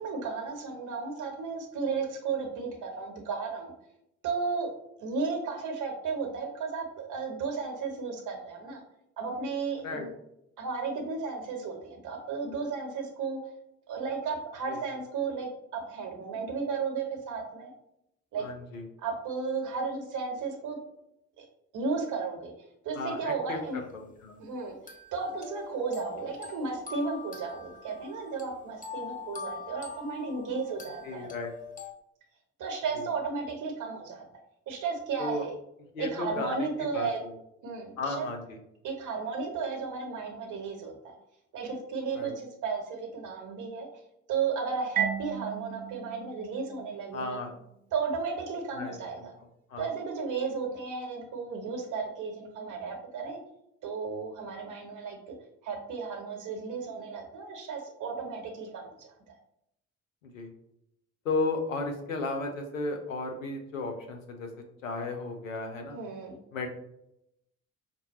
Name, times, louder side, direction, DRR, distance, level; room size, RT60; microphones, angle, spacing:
voice 1, 0.0-3.7 4.2-4.7 5.0-8.8 9.2-10.1 10.6-13.4 13.9-17.7 18.3-18.4 19.0-20.8 21.4-21.5 21.7-22.5 22.8-23.8 24.4-24.8 25.1-31.3 32.6-34.2 34.7-35.5 36.0-37.2 37.6-38.3 38.8-41.1 41.5-43.9 44.3-47.4 47.9-49.3 49.8-53.4 53.8-55.2 55.6-59.1 65.9-66.4, right 5 dB, 50° right, 2 dB, 1.0 m, -34 dB
voice 2, 18.4-18.8 23.0-23.6 23.9-24.4 31.0-31.5 33.0-33.1 35.2-35.4 35.9-36.7 36.9-37.3 38.0-38.6 42.1-42.3 47.1-47.5 48.7-49.3 49.7-49.9 60.2-60.5 61.2-64.5 64.8-66.0 66.5-66.7, left 3 dB, 85° left, 3 dB, 0.6 m, -34 dB
sound 1, 23.9-24.0 24.9-31.9, left 7 dB, 20° left, 0.6 m, -44 dB
Marimba xylophone, 45.0-47.6, right 9 dB, 25° right, 0.4 m, -35 dB
5.1 x 2.2 x 2.9 m, 0.80 s
figure-of-eight pair, 45°, 39 cm